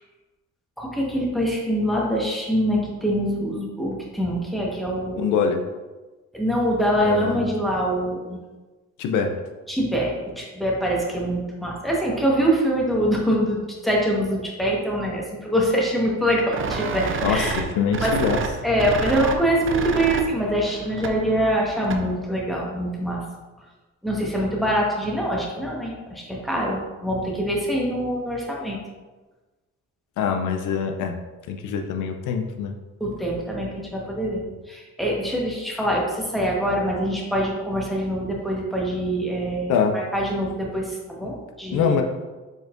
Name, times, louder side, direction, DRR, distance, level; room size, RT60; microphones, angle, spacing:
voice 1, 0.8-5.2 6.3-8.4 9.7-17.7 18.0-18.1 18.6-23.2 24.0-28.8 33.0-34.4 34.7-42.0, equal, ahead, -3 dB, 1.2 m, -24 dB
voice 2, 5.2-5.6 7.0-7.5 9.0-9.3 17.2-18.4 30.2-31.1 31.5-32.7 39.7-40.0 41.7-42.0, left 6 dB, 85° left, 4 dB, 0.5 m, -24 dB
sound 1, 16.5-22.2, right 4 dB, 45° right, 0.5 m, -30 dB
4.5 x 4.4 x 2.5 m, 1.2 s
cardioid pair, 90°, 30 cm